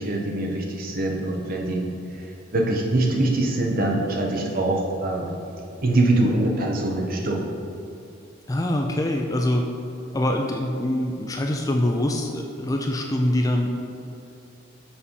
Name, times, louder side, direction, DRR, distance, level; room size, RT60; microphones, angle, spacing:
voice 1, 0.0-1.8 2.5-5.4 5.8-7.4, right 2 dB, 45° right, 0 dB, 0.9 m, -23 dB
voice 2, 8.5-9.7 10.1-13.7, left 1 dB, 15° left, 2 dB, 0.4 m, -24 dB
7.1 x 4.1 x 5.4 m, 2.6 s
head